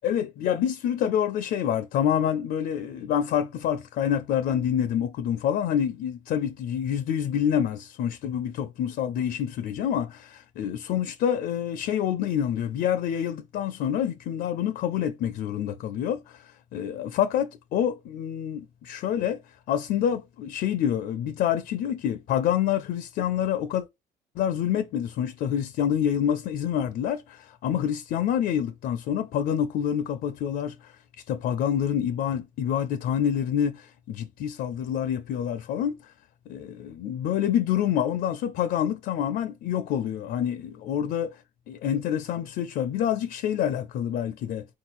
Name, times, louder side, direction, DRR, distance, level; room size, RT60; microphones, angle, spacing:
voice 1, 0.0-19.4 19.7-23.9 24.4-31.0 31.3-35.9 36.5-44.7, left 9 dB, 65° left, 0.4 m, -27 dB
4.0 x 2.6 x 4.2 m
cardioid pair, 110°, 17 cm